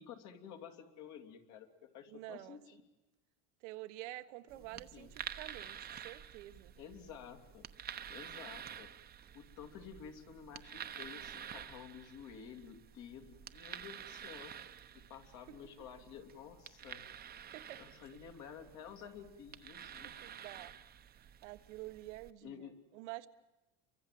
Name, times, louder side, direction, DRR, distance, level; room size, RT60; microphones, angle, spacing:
voice 1, 0.0-2.8 4.5-5.1 6.7-7.6 8.1-8.9 9.3-14.5 14.9-17.1 17.8-20.2 22.4-22.8, left 8 dB, 55° left, 6 dB, 3.0 m, -52 dB
voice 2, 2.1-2.6 3.6-5.8 6.0-6.7 17.5-17.8 20.2-20.7 21.0-21.2 21.4-23.3, right 17 dB, 90° right, 9 dB, 1.3 m, -48 dB
sound 1, 4.5-22.3, right 9 dB, 25° right, 0.9 m, -50 dB
29.5 x 23.5 x 7.7 m, 1.1 s
supercardioid pair, 135°, 35 cm